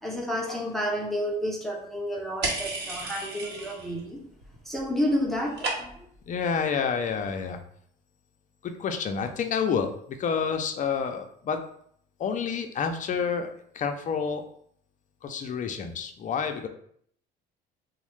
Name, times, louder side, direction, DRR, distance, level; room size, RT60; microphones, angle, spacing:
voice 1, 0.0-4.2 4.7-5.9, equal, ahead, -2 dB, 0.6 m, -30 dB
sound 1, 2.4-4.0 4.3-4.8 5.1-6.2, right 3 dB, 55° right, 0.9 m, -33 dB
voice 2, 6.3-7.6 8.6-11.6 12.2-14.4 15.2-16.7, left 6 dB, 40° left, 6 dB, 0.4 m, -29 dB
3.1 x 2.1 x 3.0 m, 0.65 s
supercardioid pair, 75°, 21 cm